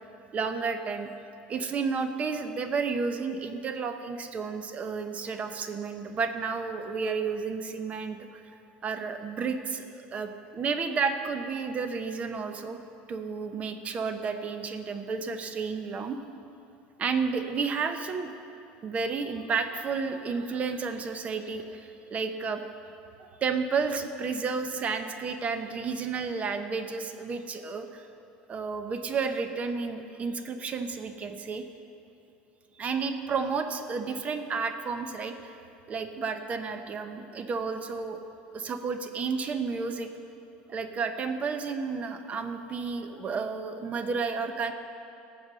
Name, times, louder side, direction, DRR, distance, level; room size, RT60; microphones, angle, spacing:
voice 1, 0.3-1.1 1.5-8.4 8.8-12.8 13.1-16.2 17.0-18.3 18.8-22.6 23.2-28.1 28.5-31.6 32.8-35.6 35.9-38.2 38.5-40.1 40.7-44.7, right 5 dB, 35° right, 7 dB, 0.9 m, -31 dB
14.0 x 7.9 x 6.3 m, 2.6 s
supercardioid pair, 105°, 4 cm